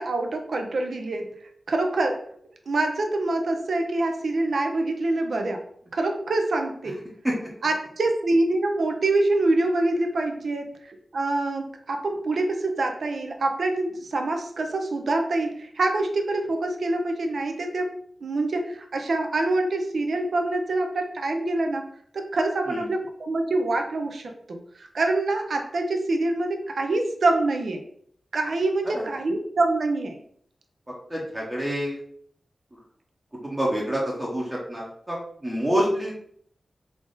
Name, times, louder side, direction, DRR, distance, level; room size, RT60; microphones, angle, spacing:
voice 1, 0.0-1.4 1.7-2.3 2.7-5.7 5.9-7.1 7.6-21.9 22.1-27.8 28.3-30.2, right 2 dB, 70° right, 4 dB, 0.5 m, -25 dB
voice 2, 31.1-32.0 33.4-36.1, equal, 15° right, -4 dB, 0.8 m, -27 dB
3.4 x 2.5 x 3.8 m, 0.62 s
wide cardioid pair, 130°, 0 cm